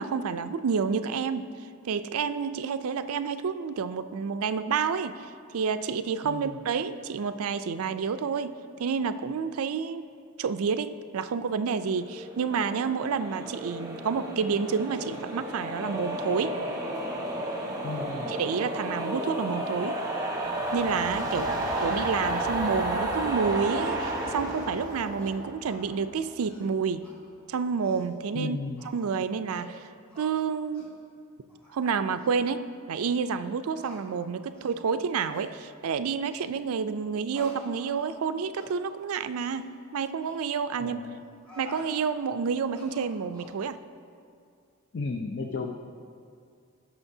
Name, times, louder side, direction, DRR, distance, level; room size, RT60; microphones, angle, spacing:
voice 1, 0.0-1.5 1.8-10.1 10.4-16.6 18.3-20.0 20.7-21.5 21.8-27.1 27.5-28.6 28.9-29.9 30.2-30.9 31.7-41.0 41.6-43.8, right 6 dB, 75° right, 12 dB, 0.4 m, -29 dB
voice 2, 6.2-6.5 17.8-18.3 21.4-21.7 28.3-28.8 40.8-41.2 44.9-45.7, left 3 dB, 50° left, 3 dB, 0.5 m, -34 dB
sound 1, 12.0-26.3, right 1 dB, 15° right, 1.0 m, -32 dB
sound 2, 24.5-24.7 25.2-25.3 25.6-25.9 26.3-26.7 27.0-27.1 27.6-28.1 28.8-29.1 29.5-29.8 30.1-30.3 30.7-30.9 31.5-31.7 32.2-32.3 32.9-33.0 33.8-34.0 34.5-34.8 35.3-35.5 36.3-36.5 37.3-38.3 38.6-38.7 39.3-39.6 40.2-40.4 41.2-41.9 42.6-43.6, equal, 5° left, 2.4 m, -49 dB
18.5 x 6.2 x 2.7 m, 2.3 s
head